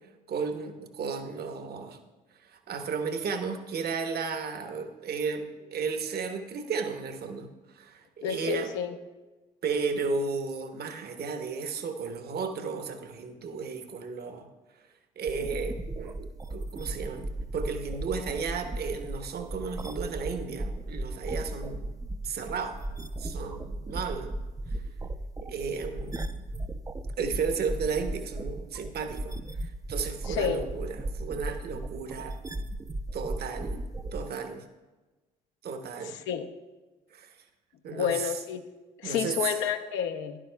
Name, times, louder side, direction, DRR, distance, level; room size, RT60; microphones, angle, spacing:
voice 1, 0.3-2.0 2.5-7.5 7.7-8.7 9.6-14.5 15.2-21.9 22.2-22.8 23.2-24.4 25.4-26.3 27.2-29.4 29.6-32.4 33.1-33.8 34.1-34.6 35.6-36.2 37.1-37.3 37.8-38.3 39.0-39.5, right 5 dB, 50° right, 7 dB, 1.1 m, -34 dB
voice 2, 8.2-8.9 30.3-30.6 36.0-36.5 37.9-38.6 39.0-40.4, left 8 dB, 70° left, 6 dB, 0.7 m, -30 dB
sound 1, 15.3-34.3, right 1 dB, 15° right, 0.5 m, -36 dB
11.0 x 11.0 x 2.2 m, 1.2 s
hypercardioid pair, 55°, 21 cm